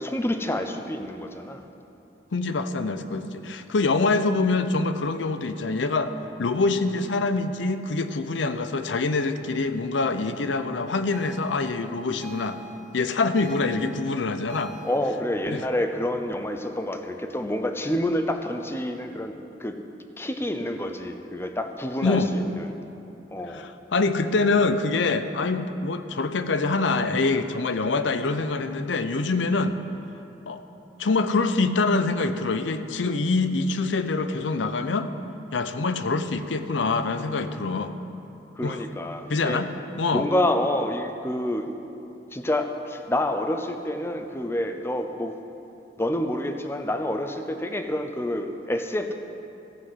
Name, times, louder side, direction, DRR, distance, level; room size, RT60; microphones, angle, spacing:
voice 1, 0.0-1.6 14.8-19.3 19.6-19.8 20.2-22.7 23.3-23.7 38.6-39.6 40.1-41.7 42.3-45.4 46.0-49.1, left 1 dB, 15° left, 6 dB, 0.6 m, -28 dB
voice 2, 2.3-6.1 6.4-12.6 12.9-14.7 15.5-15.6 22.0-22.3 23.5-29.8 30.5-30.6 31.0-35.1 35.5-37.9 38.6-38.8 39.3-39.7 40.0-40.3, left 3 dB, 90° left, 10 dB, 0.6 m, -25 dB
sound 1, 11.1-15.0, right 1 dB, 35° right, 0.9 m, -45 dB
15.0 x 5.9 x 7.8 m, 2.8 s
head